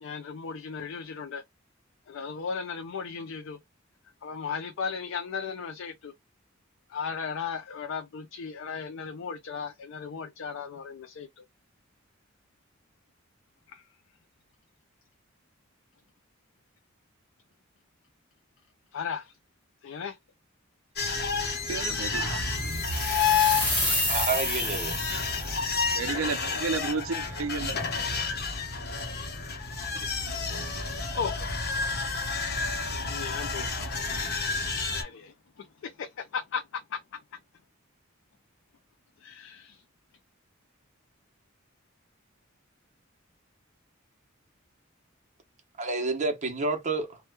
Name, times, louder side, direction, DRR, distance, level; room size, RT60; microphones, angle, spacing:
voice 1, 0.0-1.4 2.1-3.6 4.2-6.1 6.9-11.4 13.7-13.8 18.9-19.3 19.8-20.2 31.2-31.4 32.9-34.3 34.8-37.0 39.2-39.8, left 6 dB, 70° left, 0.4 m, -36 dB
sound 1, 21.0-35.0, left 5 dB, 55° left, 0.9 m, -30 dB
voice 2, 21.7-22.7 25.1-25.2 26.0-27.8 28.1-28.2 29.9-30.1, right 5 dB, 75° right, 0.4 m, -33 dB
sound 2, 22.6-25.6, left 1 dB, 10° left, 1.4 m, -30 dB
voice 3, 24.1-25.0 45.8-47.2, right 3 dB, 35° right, 0.8 m, -29 dB
2.9 x 2.2 x 3.2 m
head